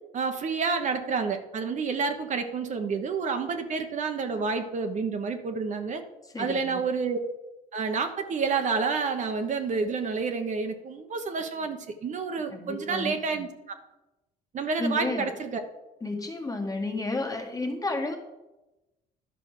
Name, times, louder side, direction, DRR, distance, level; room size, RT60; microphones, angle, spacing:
voice 1, 0.1-6.0 6.4-7.2 7.7-13.5 14.5-15.6, right 5 dB, 45° right, 6 dB, 1.1 m, -29 dB
voice 2, 6.3-6.8 12.5-13.1 14.8-15.3 16.0-18.2, left 2 dB, 20° left, 3 dB, 1.7 m, -31 dB
11.0 x 5.2 x 6.6 m, 1.0 s
cardioid pair, 110°, 17 cm